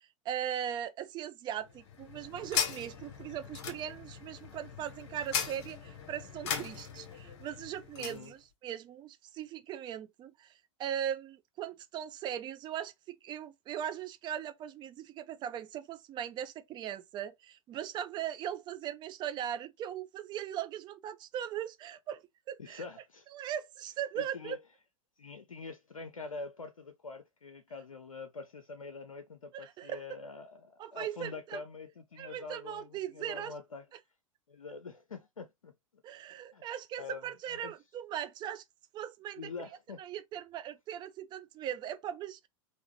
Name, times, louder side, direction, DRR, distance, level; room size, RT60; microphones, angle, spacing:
voice 1, 0.0-10.5 10.8-22.2 22.5-22.8 23.3-24.6 29.5-30.0 30.8-31.6 32.2-33.5 36.0-38.6 38.9-39.5 40.0-42.5, right 10 dB, 25° right, 0.5 m, -39 dB
sound 1, 1.6-8.2, left 7 dB, 55° left, 0.8 m, -38 dB
voice 2, 8.0-8.3 22.6-23.3 24.2-24.6 25.2-33.9 34.5-35.7 36.5-36.6 37.0-37.7 39.4-40.0, left 4 dB, 80° left, 0.5 m, -45 dB
3.4 x 2.5 x 3.0 m
figure-of-eight pair, 90°, 17 cm